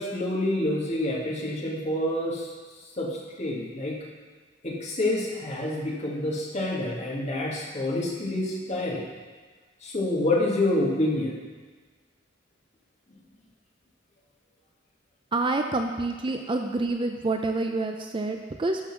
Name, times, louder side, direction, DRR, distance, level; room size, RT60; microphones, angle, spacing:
voice 1, 0.0-2.5 3.0-4.0 4.6-9.0 9.8-11.4, left 1 dB, 35° left, -5 dB, 1.9 m, -27 dB
voice 2, 15.3-18.8, right 2 dB, 25° right, 4 dB, 0.4 m, -27 dB
11.5 x 4.0 x 6.0 m, 1.4 s
head